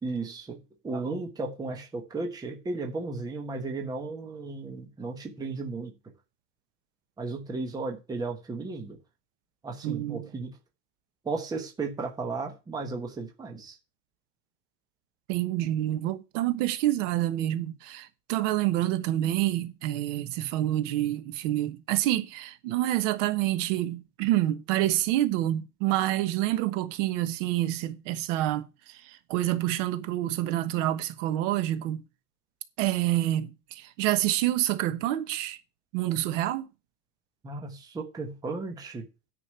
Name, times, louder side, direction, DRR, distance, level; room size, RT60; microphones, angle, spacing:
voice 1, 0.0-0.6 0.8-5.9 7.2-9.0 9.6-10.5 11.2-13.7 37.4-39.0, right 3 dB, 10° right, 1.1 m, -34 dB
voice 2, 9.8-10.3 15.3-32.0 32.8-35.6 35.9-36.7, right 14 dB, 50° right, 1.3 m, -27 dB
9.9 x 5.3 x 7.4 m
supercardioid pair, 180°, 47 cm